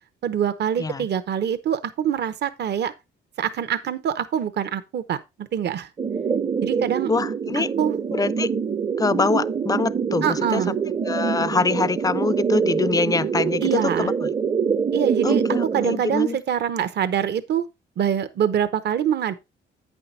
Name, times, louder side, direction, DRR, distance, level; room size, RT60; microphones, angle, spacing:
voice 1, 0.2-2.9 3.4-5.9 6.6-7.1 7.5-7.9 10.2-10.7 13.6-14.1 14.9-15.4 15.7-17.6 18.0-19.4, right 9 dB, 60° right, 0.9 m, -24 dB
sound 1, 6.0-16.0, right 6 dB, 25° right, 0.6 m, -25 dB
voice 2, 7.1-7.7 8.1-8.5 9.0-10.8 11.1-14.3 15.2-16.4, left 4 dB, 20° left, 0.4 m, -24 dB
8.8 x 5.8 x 4.0 m
cardioid pair, 90°, 20 cm